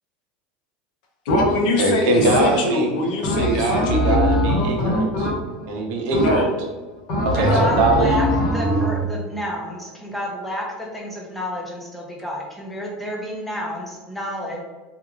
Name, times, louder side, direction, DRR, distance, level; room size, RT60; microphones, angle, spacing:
voice 1, 1.2-4.4 6.1-6.5 7.4-7.7, left 1 dB, 65° left, 1 dB, 0.7 m, -23 dB
sound 1, 1.3-1.8 2.2-2.8 3.2-5.7 6.1-6.6 7.1-9.0, equal, 45° left, 1.2 m, -22 dB
voice 2, 1.8-2.9 3.4-5.3 5.7-6.5 7.2-8.1, right 2 dB, 50° right, 0 dB, 0.7 m, -22 dB
voice 3, 7.4-14.6, left 1 dB, ahead, -3 dB, 0.5 m, -30 dB
3.5 x 2.4 x 3.1 m, 1.3 s
supercardioid pair, 175°, 4 cm